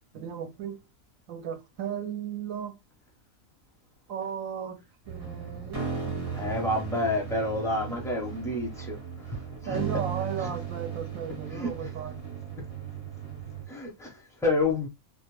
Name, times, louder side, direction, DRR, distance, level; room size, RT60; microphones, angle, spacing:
voice 1, 0.1-0.8 1.3-2.7 4.1-4.8 5.1-6.7 9.7-12.4, right 8 dB, 70° right, 1.0 m, -36 dB
sound 1, 5.1-13.7, right 6 dB, 30° right, 0.8 m, -36 dB
voice 2, 6.3-9.8 10.4-10.5 11.5-11.7 13.7-14.9, left 2 dB, 5° left, 0.3 m, -29 dB
2.4 x 2.1 x 3.0 m
omnidirectional pair, 1.6 m